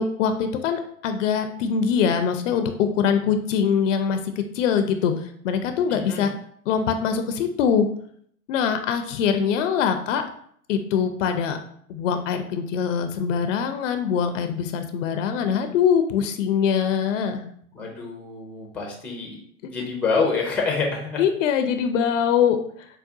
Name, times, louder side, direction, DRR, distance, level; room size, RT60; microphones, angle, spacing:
voice 1, 0.0-6.3 6.7-7.9 8.5-10.2 10.7-11.6 11.9-17.4 20.2-20.3 21.2-22.6, left 7 dB, 55° left, 7 dB, 0.5 m, -23 dB
voice 2, 5.9-6.3 17.7-19.4 19.6-21.2, left 4 dB, 5° left, 0 dB, 0.4 m, -27 dB
4.7 x 2.1 x 2.6 m, 0.64 s
hypercardioid pair, 105°, 45 cm